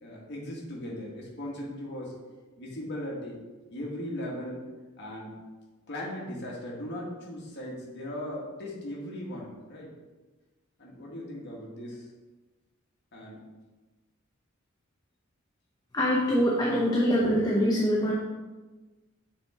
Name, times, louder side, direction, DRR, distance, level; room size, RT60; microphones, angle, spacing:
voice 1, 0.0-2.1 2.6-3.4 3.7-4.7 5.0-5.3 5.9-9.9 10.8-12.1 13.1-13.4, left 1 dB, 55° left, -3 dB, 1.7 m, -38 dB
voice 2, 15.9-18.1, equal, 20° left, -4 dB, 0.8 m, -24 dB
7.2 x 4.7 x 3.6 m, 1.2 s
head